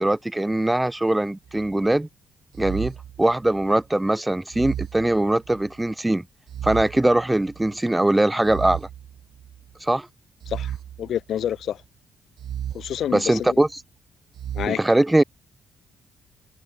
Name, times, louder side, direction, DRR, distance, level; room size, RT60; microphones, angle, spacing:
voice 1, 0.0-2.1 2.6-6.2 6.6-8.9 9.8-10.1 13.1-13.8 14.7-15.2, right 1 dB, 10° right, 2.5 m, -21 dB
sound 1, 1.5-1.9 2.5-3.8 4.5-5.8 6.5-7.8 8.4-9.7 10.4-11.7 12.4-13.7 14.3-14.7, right 10 dB, 65° right, 6.3 m, -35 dB
voice 2, 11.0-11.8 12.7-13.6 14.5-14.8, left 10 dB, 60° left, 4.4 m, -28 dB
cardioid pair, 160°, 0 cm